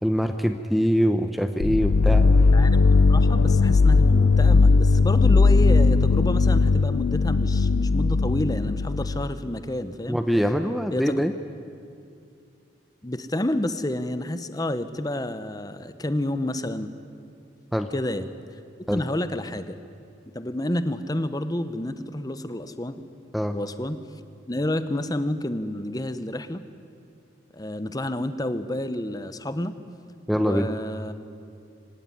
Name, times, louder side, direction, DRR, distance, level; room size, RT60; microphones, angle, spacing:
voice 1, 0.0-2.3 10.1-11.3 17.7-17.9 18.9-19.0 23.3-23.6 30.3-30.7, equal, ahead, 7 dB, 0.7 m, -23 dB
sound 1, 1.6-9.3, left 3 dB, 85° left, 0.5 m, -18 dB
voice 2, 2.5-2.8 3.1-10.2 10.9-11.2 13.0-16.9 17.9-18.3 18.9-19.8 20.3-23.0 23.5-24.0 24.5-26.6 27.5-29.7 30.4-31.1, left 1 dB, 20° left, 12 dB, 0.9 m, -29 dB
25.0 x 17.0 x 9.9 m, 2.5 s
head